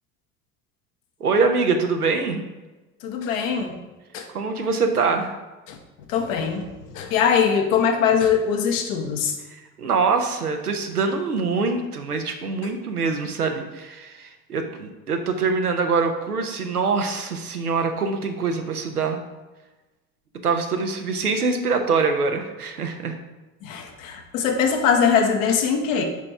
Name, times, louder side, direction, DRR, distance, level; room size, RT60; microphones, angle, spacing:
voice 1, 1.2-2.4 4.3-5.4 7.0-7.1 9.5-19.2 20.4-23.2, right 4 dB, 85° right, 5 dB, 0.8 m, -24 dB
voice 2, 3.0-3.7 4.1-4.2 5.7-5.8 6.1-6.6 6.9-9.3 23.6-26.0, left 7 dB, 60° left, 4 dB, 1.1 m, -21 dB
5.3 x 4.8 x 5.7 m, 1.1 s
figure-of-eight pair, 60°, 44 cm